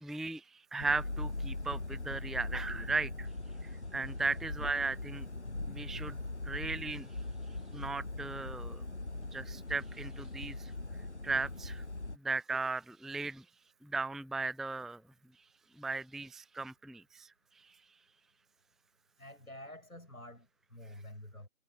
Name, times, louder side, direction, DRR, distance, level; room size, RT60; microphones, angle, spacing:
voice 1, 0.0-3.3 3.9-5.3 5.7-6.2 6.4-7.1 7.7-8.8 9.3-10.7 11.2-11.8 12.2-13.4 13.8-15.0 15.8-17.3, right 3 dB, ahead, 0.5 m, -36 dB
sound 1, 0.8-12.2, left 2 dB, 55° left, 0.8 m, -41 dB
voice 2, 19.2-21.5, left 1 dB, 90° left, 6.7 m, -49 dB
figure-of-eight pair, 180°, 42 cm